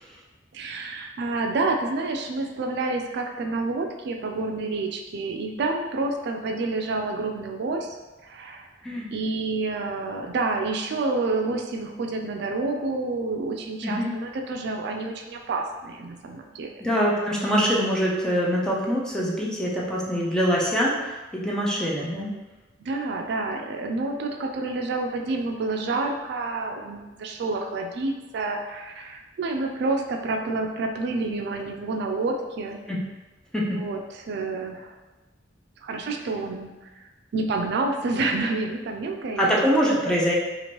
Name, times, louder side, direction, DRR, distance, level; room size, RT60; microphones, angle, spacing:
voice 1, 0.5-8.0 8.2-8.7 9.1-16.7 22.8-32.8 33.7-35.0 35.8-39.5, right 3 dB, 65° right, 3 dB, 0.3 m, -29 dB
voice 2, 13.8-14.2 16.8-22.3 32.9-33.0 33.5-33.8 39.4-40.3, equal, 5° left, -4 dB, 0.5 m, -24 dB
2.9 x 2.5 x 2.9 m, 1.2 s
head